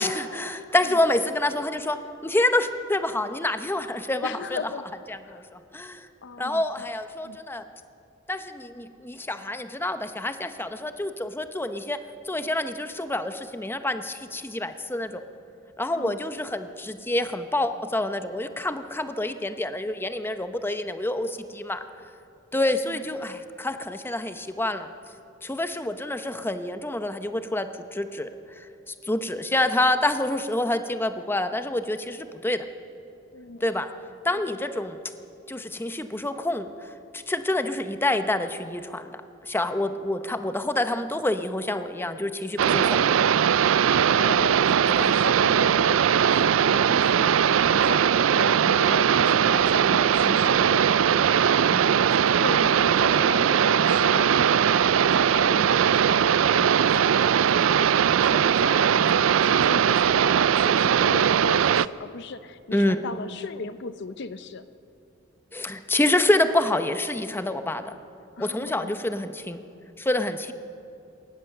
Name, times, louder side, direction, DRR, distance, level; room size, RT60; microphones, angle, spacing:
voice 1, 0.0-4.6 5.3-6.1 6.4-7.7 8.3-12.0 12.2-15.2 15.8-21.8 22.5-24.9 25.4-28.3 28.6-32.6 33.6-33.9 34.2-35.0 35.5-43.0 45.0-45.1 51.7-52.0 62.7-63.0 65.5-67.9 68.4-69.6 70.0-70.5, left 1 dB, 10° left, 9 dB, 0.8 m, -27 dB
voice 2, 4.2-4.9 5.2-5.5 6.2-6.9 7.2-7.4 15.9-16.2 16.5-16.6 22.9-23.1 33.3-33.6 34.3-34.4 44.0-51.5 52.1-57.9 58.2-64.7 68.4-69.0, left 4 dB, 60° left, 13 dB, 0.7 m, -37 dB
sound 1, 42.6-61.9, right 8 dB, 85° right, 0.4 m, -20 dB
22.0 x 18.5 x 6.7 m, 2.7 s
head